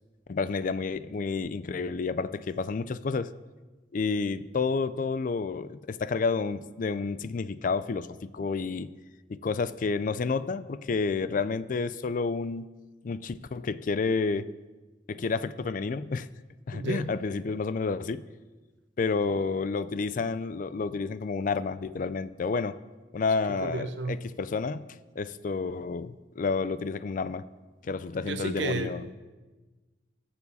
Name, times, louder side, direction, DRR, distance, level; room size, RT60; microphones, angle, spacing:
voice 1, 0.3-3.3 3.9-8.9 9.3-12.6 13.0-14.5 15.1-16.3 16.7-18.2 19.0-22.7 23.1-24.9 25.2-27.4 27.8-29.0, left 4 dB, 45° left, 15 dB, 0.4 m, -30 dB
voice 2, 16.7-17.1 23.5-24.2 28.2-29.1, right 2 dB, 75° right, 8 dB, 1.0 m, -32 dB
21.0 x 7.0 x 4.1 m, 1.2 s
head